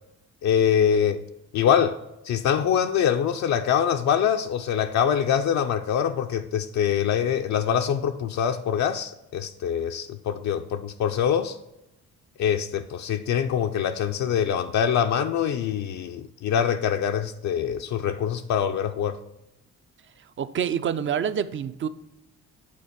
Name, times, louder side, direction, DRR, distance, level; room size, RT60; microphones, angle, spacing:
voice 1, 0.4-1.2 1.5-2.0 2.2-11.6 12.4-19.2, left 8 dB, 65° left, 5 dB, 0.5 m, -24 dB
voice 2, 20.4-21.9, right 8 dB, 40° right, 13 dB, 0.5 m, -27 dB
8.7 x 3.9 x 5.0 m, 0.90 s
cardioid pair, 90°, 30 cm